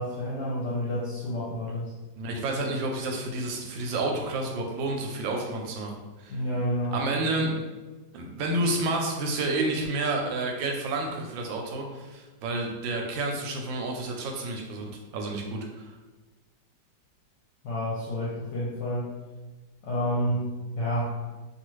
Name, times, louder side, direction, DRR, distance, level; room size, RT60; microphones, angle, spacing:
voice 1, 0.0-1.9 6.3-7.0 17.6-19.1 19.8-20.5 20.8-21.2, equal, 70° left, -6 dB, 1.1 m, -29 dB
voice 2, 2.2-5.9 6.2-6.4 6.9-7.5 8.1-15.9, right 2 dB, 85° right, 1 dB, 1.3 m, -30 dB
2.9 x 2.4 x 3.1 m, 1.2 s
omnidirectional pair, 2.0 m